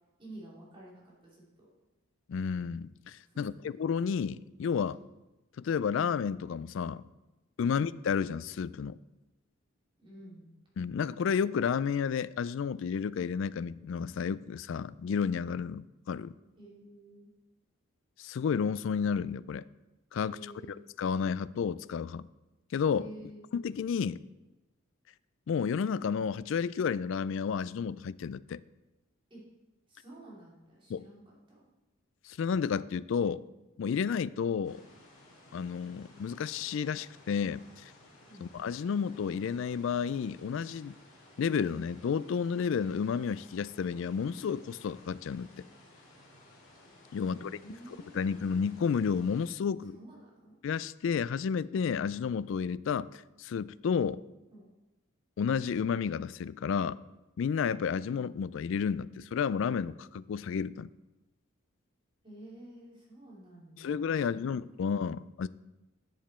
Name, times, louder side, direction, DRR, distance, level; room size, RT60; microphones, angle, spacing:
voice 1, 0.2-1.7 3.2-3.6 10.0-10.5 16.6-17.3 20.2-20.8 23.0-23.5 29.3-29.4 29.9-31.6 38.3-38.5 47.1-48.6 49.8-50.5 54.5-54.7 62.2-64.6, right 1 dB, 25° right, 3.1 m, -51 dB
voice 2, 2.3-3.5 3.8-5.0 5.6-7.0 7.6-9.0 10.8-16.3 18.2-19.6 20.1-20.4 21.0-22.3 22.7-23.0 23.5-24.2 25.5-28.6 30.9-31.0 32.2-33.4 33.8-34.8 35.5-37.9 38.4-40.9 41.4-45.5 47.1-47.5 48.1-49.9 50.6-54.2 55.4-57.0 57.4-60.9 63.8-65.5, left 6 dB, 60° left, 0.3 m, -31 dB
sound 1, 34.6-49.5, left 1 dB, 40° left, 3.8 m, -57 dB
10.5 x 7.2 x 4.3 m
head